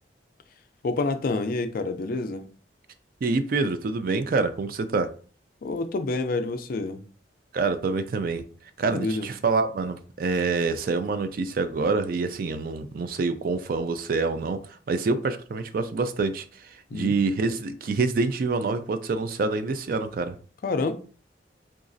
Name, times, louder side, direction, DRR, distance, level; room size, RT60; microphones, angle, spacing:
voice 1, 0.8-2.5 5.6-7.0 8.8-9.3 16.9-17.2 20.6-20.9, left 3 dB, 50° left, 0.4 m, -28 dB
voice 2, 3.2-5.1 7.5-8.4 8.8-14.6 14.9-20.4, right 4 dB, 50° right, 0.3 m, -26 dB
3.9 x 2.3 x 2.5 m
head